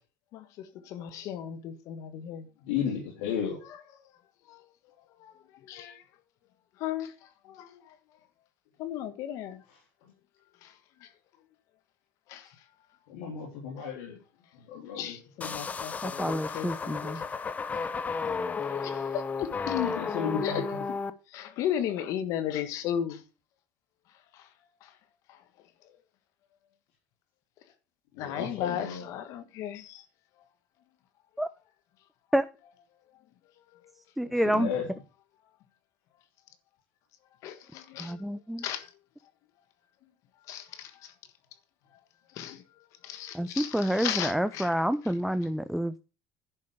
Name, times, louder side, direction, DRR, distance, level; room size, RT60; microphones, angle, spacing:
voice 1, 0.3-2.5 4.5-4.6 5.2-6.0 6.8-7.9 8.8-9.6 10.6-10.7 11.0-11.1 12.3-12.5 14.9-17.3 18.6-19.8 20.4-20.6 21.3-23.2 24.3-24.5 24.8-24.9 25.3-25.4 28.2-30.0 33.7-33.8 37.4-38.2 38.6-38.9 40.5-41.1 42.3-42.6 43.0-44.7, left 10 dB, 65° left, 1.5 m, -36 dB
voice 2, 2.6-3.6 13.1-14.2 14.7-15.2 15.4-15.6 19.7-20.8 28.1-29.0 34.3-34.9, left 8 dB, 80° left, 3.7 m, -33 dB
sound 1, 15.4-21.1, left 5 dB, 25° left, 0.9 m, -33 dB
voice 3, 16.0-17.2 31.4-31.5 32.3-32.4 34.2-34.7 38.0-38.6 43.3-46.0, equal, ahead, 0.6 m, -28 dB
11.0 x 5.3 x 6.7 m
supercardioid pair, 105°, 6 cm